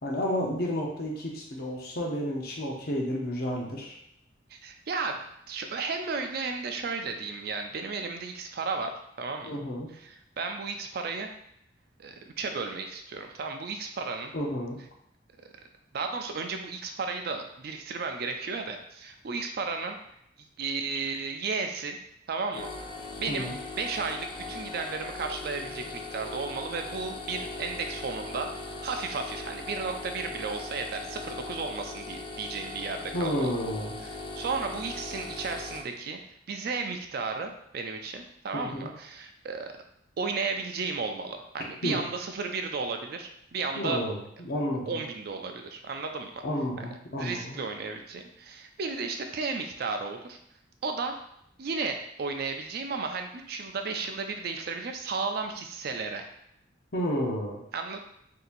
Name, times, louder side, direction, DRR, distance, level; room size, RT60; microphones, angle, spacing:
voice 1, 0.0-4.0 9.5-9.9 14.3-14.8 23.3-23.6 33.1-33.9 38.5-38.9 41.8-42.0 43.7-45.0 46.4-47.6 56.9-57.6, equal, 55° left, -1 dB, 0.8 m, -31 dB
voice 2, 4.5-5.2 5.5-8.9 9.2-9.6 9.9-11.3 12.0-14.3 15.4-15.5 15.9-20.0 20.6-22.0 22.3-22.7 23.2-23.5 23.7-33.5 34.0-36.2 36.5-39.7 40.2-44.0 44.9-46.4 46.8-46.9 47.2-50.4 50.8-51.2 51.6-56.2 57.7-58.0, right 4 dB, 55° right, 5 dB, 0.4 m, -34 dB
sound 1, 22.5-35.8, left 3 dB, 25° left, 0.3 m, -39 dB
4.0 x 2.8 x 2.5 m, 0.74 s
head